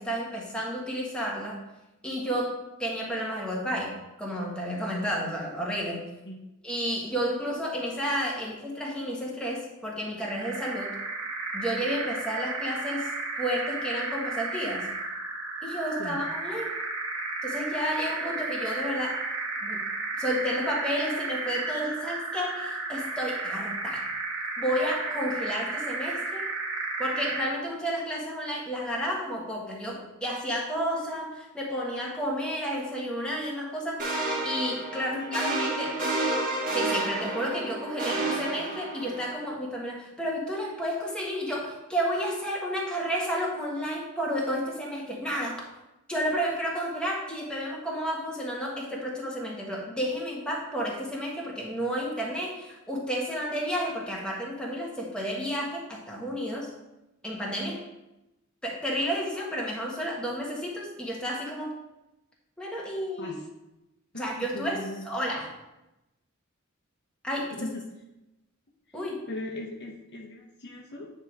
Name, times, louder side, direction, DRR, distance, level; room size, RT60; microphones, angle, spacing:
voice 1, 0.0-1.6 2.0-3.9 4.2-6.0 6.6-10.9 11.5-13.1 13.4-14.9 15.6-16.7 17.4-19.2 19.6-19.9 20.2-24.1 24.6-26.5 27.0-34.1 34.4-35.9 36.7-45.6 46.1-56.7 57.2-57.8 58.6-61.7 62.6-63.3 64.1-64.8 65.0-65.5 67.2-67.7 68.9-69.2, equal, 5° left, -3 dB, 1.4 m, -31 dB
sound 1, 10.2-27.6, right 3 dB, 60° right, 1.1 m, -33 dB
sound 2, 34.0-39.3, right 2 dB, 40° right, 1.6 m, -30 dB
voice 2, 34.9-36.0 63.2-63.4 64.1-65.1 67.5-67.8 69.3-71.1, left 2 dB, 55° left, 0 dB, 0.9 m, -38 dB
9.5 x 3.6 x 4.6 m, 0.96 s
head